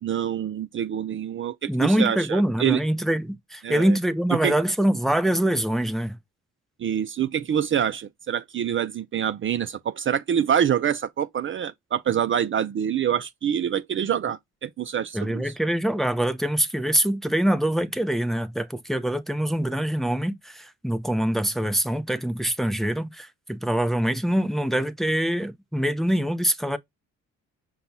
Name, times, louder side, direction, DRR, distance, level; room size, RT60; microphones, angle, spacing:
voice 1, 0.0-2.8 3.6-4.0 4.3-4.6 6.8-15.5, right 9 dB, 40° right, 0.5 m, -26 dB
voice 2, 1.7-6.2 15.1-26.8, right 1 dB, ahead, 0.7 m, -24 dB
5.6 x 2.3 x 4.0 m
cardioid pair, 90°, 30 cm